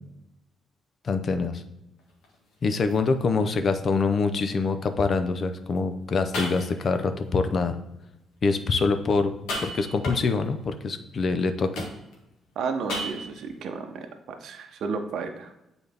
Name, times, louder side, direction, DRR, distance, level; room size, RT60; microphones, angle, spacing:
voice 1, 1.0-1.6 2.6-7.8 8.4-9.3 9.6-11.8, left 4 dB, 45° left, 9 dB, 0.6 m, -25 dB
sound 1, 2.0-2.3 2.9-3.0 3.7-3.8 5.8-5.9 6.3-7.0 9.3-10.5 11.7-12.3 12.9-13.5, left 1 dB, 90° left, 1.6 m, -33 dB
voice 2, 12.6-15.5, right 5 dB, 70° right, 5 dB, 0.7 m, -32 dB
7.8 x 4.0 x 3.5 m, 0.89 s
cardioid pair, 90°, 0 cm